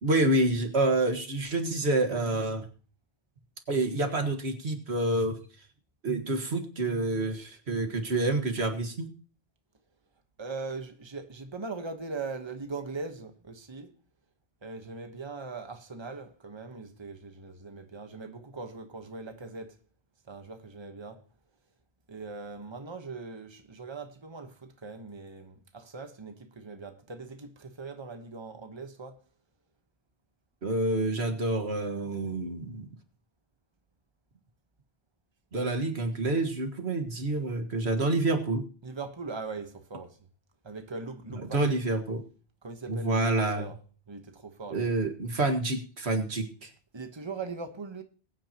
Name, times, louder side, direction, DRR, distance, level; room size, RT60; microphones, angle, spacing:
voice 1, 0.0-2.7 3.7-5.4 6.0-9.1 30.6-32.9 35.5-38.6 41.3-42.2 42.9-43.7 44.7-46.7, right 2 dB, 90° right, 2.0 m, -28 dB
voice 2, 10.4-13.9 14.6-19.8 20.3-21.2 22.1-29.2 38.8-40.3 40.6-41.8 42.6-43.8 44.1-44.9 46.9-48.0, right 4 dB, 25° right, 1.2 m, -40 dB
21.5 x 9.1 x 2.9 m
omnidirectional pair, 1.1 m